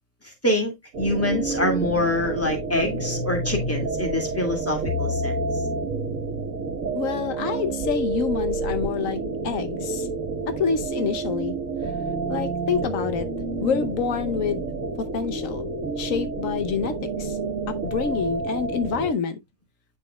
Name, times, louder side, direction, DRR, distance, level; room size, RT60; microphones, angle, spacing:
voice 1, 0.4-5.3, left 1 dB, 10° left, 2.1 m, -25 dB
sound 1, 0.9-19.1, right 3 dB, 80° right, 1.6 m, -29 dB
voice 2, 6.9-10.1 10.5-11.6 12.3-13.3 13.6-14.6 15.0-15.7 16.0-17.4 17.7-19.4, left 6 dB, 85° left, 1.2 m, -27 dB
9.3 x 5.4 x 2.2 m
omnidirectional pair, 1.3 m